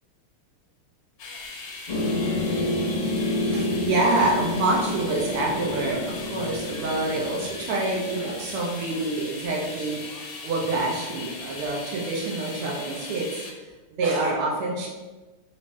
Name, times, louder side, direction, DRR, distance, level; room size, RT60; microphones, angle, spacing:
sound 1, 1.2-13.5, left 3 dB, 65° left, 0.9 m, -39 dB
sound 2, 1.9-9.1, left 1 dB, 30° left, 0.7 m, -29 dB
voice 1, 3.3-13.4 13.9-14.9, right 2 dB, 85° right, -2 dB, 1.8 m, -27 dB
4.9 x 2.6 x 4.1 m, 1.2 s
omnidirectional pair, 2.4 m